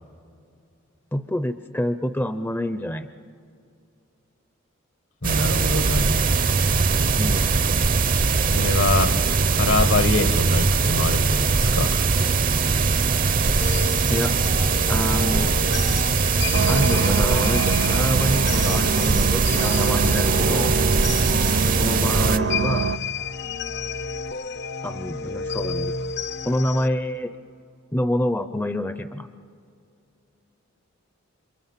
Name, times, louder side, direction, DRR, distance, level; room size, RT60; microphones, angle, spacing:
voice 1, 1.1-3.1 7.2-7.5 12.8-12.9 14.1-14.3 14.9-15.6 16.7-20.8 21.8-22.9 24.8-25.9 26.5-27.3 27.9-29.3, left 1 dB, 10° left, 11 dB, 0.6 m, -27 dB
voice 2, 5.2-6.3 8.5-9.2 9.5-12.1, left 2 dB, 70° left, 9 dB, 1.7 m, -24 dB
sound 1, 5.2-22.4, right 4 dB, 45° right, 0.7 m, -21 dB
sound 2, 13.6-26.9, left 4 dB, 55° left, 0.8 m, -31 dB
sound 3, 16.5-23.0, right 5 dB, 80° right, 0.6 m, -25 dB
28.5 x 26.5 x 7.4 m, 2.4 s
head